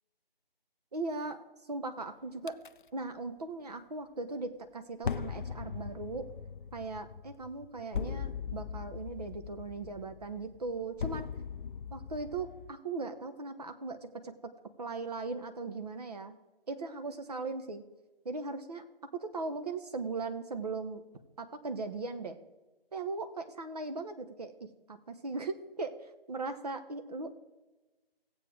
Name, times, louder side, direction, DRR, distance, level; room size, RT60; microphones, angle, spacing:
voice 1, 0.9-2.6 2.9-6.3 6.7-11.3 11.9-14.5 14.8-16.4 16.7-17.8 18.2-18.8 19.1-21.0 21.4-22.4 22.9-27.3, right 3 dB, 40° right, 8 dB, 1.1 m, -38 dB
sound 1, 2.5-2.7 5.0-12.7, left 6 dB, 55° left, 0.4 m, -40 dB
16.0 x 8.1 x 4.6 m, 1.1 s
figure-of-eight pair, 160°, 30 cm